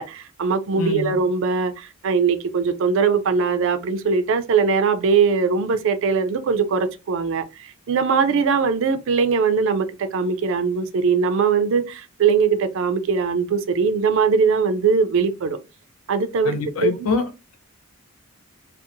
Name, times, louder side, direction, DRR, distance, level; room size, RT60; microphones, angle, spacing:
voice 1, 0.0-15.6 16.1-17.1, right 5 dB, 60° right, 0.4 m, -21 dB
voice 2, 0.8-1.2 16.4-17.6, left 3 dB, 75° left, 0.5 m, -25 dB
2.7 x 2.0 x 2.5 m
head